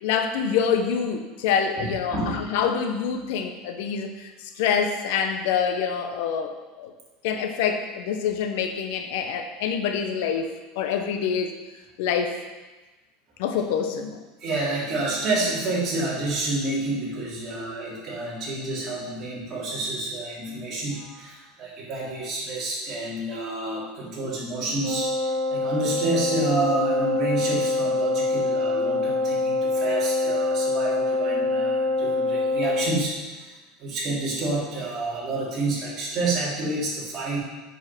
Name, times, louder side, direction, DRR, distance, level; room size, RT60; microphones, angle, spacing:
voice 1, 0.0-4.3 4.6-6.9 7.2-11.5 12.0-12.3 13.4-14.2, left 7 dB, 70° left, 6 dB, 0.9 m, -26 dB
voice 2, 1.8-2.4 14.4-37.4, right 2 dB, 35° right, -6 dB, 3.1 m, -29 dB
Wind instrument woodwind instrument, 24.8-33.0, left 2 dB, 15° left, 2.4 m, -25 dB
7.8 x 5.5 x 6.0 m, 1.2 s
supercardioid pair, 155°, 0 cm